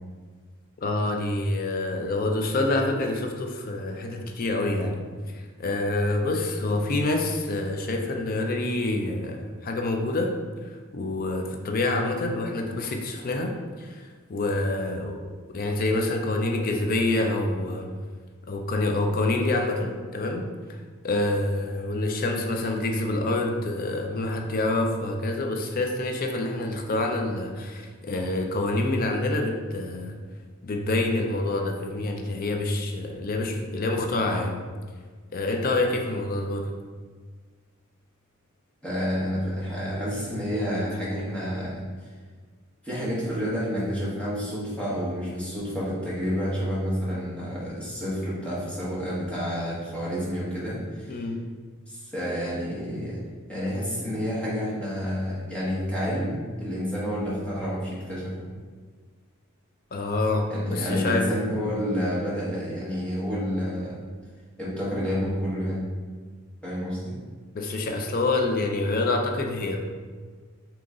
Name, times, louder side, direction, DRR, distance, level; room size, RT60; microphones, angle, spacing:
voice 1, 0.8-5.1 5.3-10.4 10.6-15.2 15.5-17.9 18.5-20.5 21.0-30.2 30.6-34.6 35.3-36.7 51.1-51.4 59.9-61.3 67.5-69.8, left 2 dB, 45° left, 3 dB, 0.4 m, -27 dB
voice 2, 38.8-42.1 42.8-51.3 51.9-53.2 53.5-58.5 60.5-64.0 64.6-65.9 66.6-67.2, equal, 5° left, -8 dB, 1.1 m, -29 dB
3.8 x 2.9 x 3.6 m, 1.5 s
head